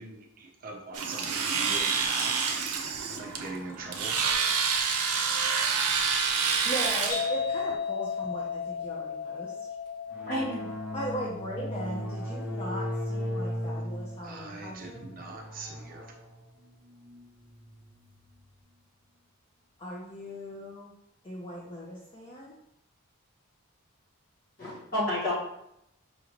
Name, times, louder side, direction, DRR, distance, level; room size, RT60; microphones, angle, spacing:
voice 1, 0.0-2.8 3.1-4.2 14.2-16.0, right 3 dB, 40° right, 1 dB, 0.5 m, -42 dB
Domestic sounds home sounds, 0.9-7.3, right 5 dB, 90° right, 0.6 m, -28 dB
voice 2, 6.6-9.5 10.9-15.1 19.8-20.9 21.2-22.5, equal, 25° left, -4 dB, 0.5 m, -38 dB
sound 1, 7.1-14.5, left 6 dB, 60° left, 0.8 m, -36 dB
sound 2, 10.1-18.2, equal, 5° right, 0.8 m, -37 dB
voice 3, 10.3-10.7 24.6-25.3, left 1 dB, 40° left, -7 dB, 1.5 m, -30 dB
5.1 x 2.6 x 3.0 m, 0.79 s
head